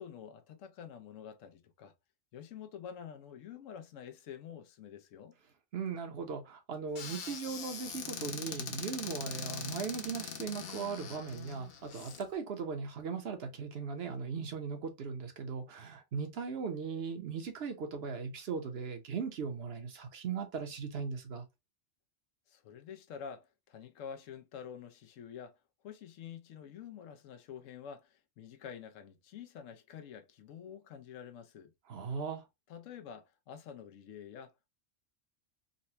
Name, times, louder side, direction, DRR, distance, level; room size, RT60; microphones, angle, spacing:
voice 1, 0.0-1.9 2.3-5.4 22.5-25.6 25.8-31.7 32.7-34.7, left 8 dB, 85° left, 1.0 m, -48 dB
voice 2, 5.7-21.5 31.9-32.4, right 5 dB, 55° right, 1.0 m, -38 dB
Squeak / Cupboard open or close, 6.9-12.2, left 7 dB, 55° left, 0.8 m, -42 dB
4.0 x 2.1 x 2.7 m
omnidirectional pair, 1.3 m